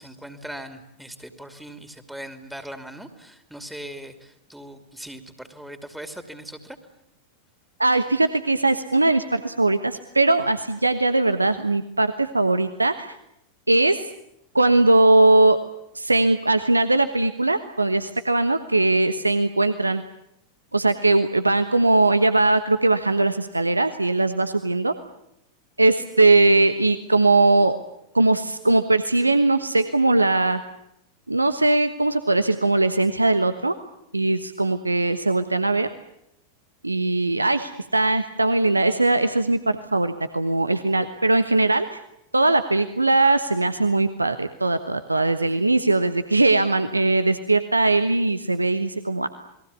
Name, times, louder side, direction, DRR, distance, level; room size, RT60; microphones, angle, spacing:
voice 1, 0.0-6.8, right 1 dB, 5° right, 8 dB, 2.7 m, -40 dB
voice 2, 7.8-13.1 13.7-14.1 14.5-15.6 15.9-20.0 20.7-24.9 25.8-27.8 28.1-30.6 31.3-33.7 34.1-35.9 36.8-42.0 42.3-49.3, right 2 dB, 85° right, 11 dB, 1.2 m, -20 dB
29.5 x 21.5 x 8.4 m, 0.81 s
figure-of-eight pair, 90°, 0 cm